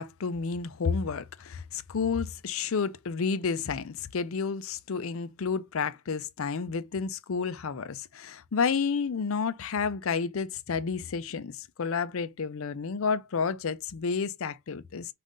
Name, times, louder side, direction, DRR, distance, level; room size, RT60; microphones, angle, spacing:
voice 1, 0.0-15.1, left 5 dB, 60° left, 0.5 m, -31 dB
5.4 x 2.5 x 3.7 m
head